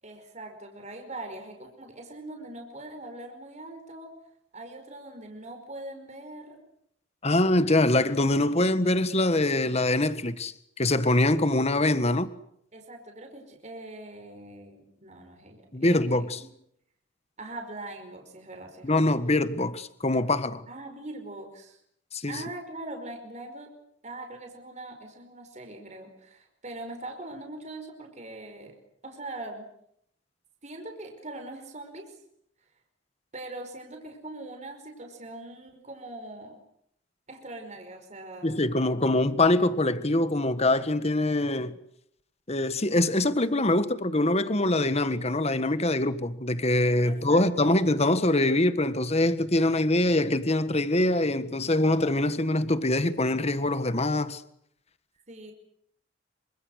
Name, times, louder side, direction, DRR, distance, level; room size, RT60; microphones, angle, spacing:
voice 1, 0.0-4.1 4.5-6.6 7.9-8.8 12.7-16.5 17.4-19.1 20.7-21.8 22.3-23.7 24.0-28.8 29.0-29.7 30.6-32.1 33.3-36.6 37.3-38.6 47.0-47.8 55.3-55.5, right 2 dB, 35° right, 5.1 m, -42 dB
voice 2, 7.2-12.3 15.7-16.4 18.8-20.7 22.1-22.4 38.4-41.7 42.5-54.4, left 2 dB, 35° left, 1.6 m, -24 dB
27.5 x 25.5 x 6.6 m
head